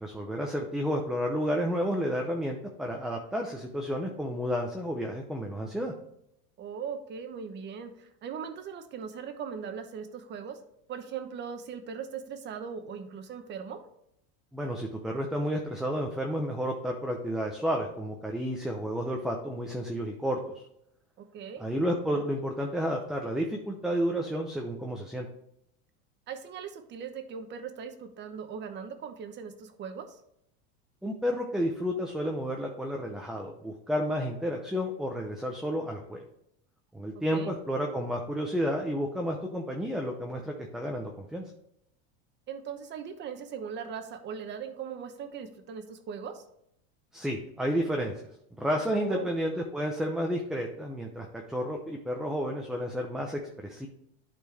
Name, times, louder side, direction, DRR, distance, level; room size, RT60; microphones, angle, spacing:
voice 1, 0.0-5.9 14.5-20.7 21.6-25.3 31.0-36.2 36.9-41.5 47.1-48.1 48.6-53.9, equal, ahead, 1 dB, 0.6 m, -31 dB
voice 2, 6.6-10.6 10.9-13.8 21.2-21.7 26.3-30.2 37.3-37.5 42.5-46.4 48.9-49.3, right 7 dB, 35° right, 8 dB, 1.0 m, -39 dB
11.0 x 4.4 x 3.4 m, 0.76 s
supercardioid pair, 135°, 31 cm